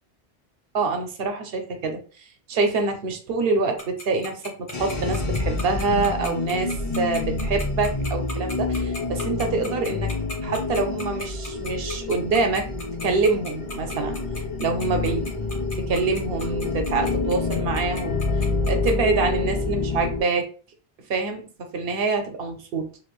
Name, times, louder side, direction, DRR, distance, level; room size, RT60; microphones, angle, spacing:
voice 1, 0.7-2.0 2.5-10.2 10.4-12.7 13.0-14.2 14.6-15.3 15.7-18.2 18.7-20.5 21.1-22.9, right 3 dB, 70° right, 5 dB, 0.9 m, -25 dB
Tick-tock, 3.8-18.9, left 2 dB, 55° left, 1.1 m, -36 dB
sound 1, 4.7-20.2, left 3 dB, 40° left, 0.6 m, -28 dB
2.9 x 2.5 x 3.1 m, 0.38 s
omnidirectional pair, 1.1 m